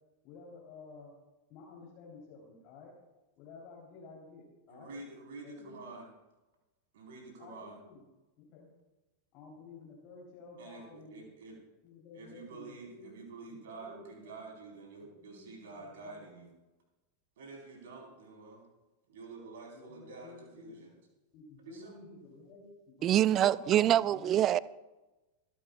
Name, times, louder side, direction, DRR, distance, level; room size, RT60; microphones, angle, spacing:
voice 1, 0.2-1.1 1.5-2.9 3.4-4.9 5.4-5.9 7.4-8.0 8.4-8.7 9.3-11.2 11.8-13.1 13.5-14.4 15.0-16.3 19.7-20.8 21.3-24.4, left 4 dB, 40° left, 3.7 m, -52 dB
voice 2, 4.7-6.1 6.9-7.8 10.6-11.6 12.1-16.5 17.4-18.6 19.1-21.0 21.6-21.9, right 3 dB, 55° right, 4.5 m, -48 dB
voice 3, 23.0-24.6, right 12 dB, 30° right, 0.3 m, -25 dB
26.5 x 11.5 x 2.4 m
figure-of-eight pair, 90°, 0 cm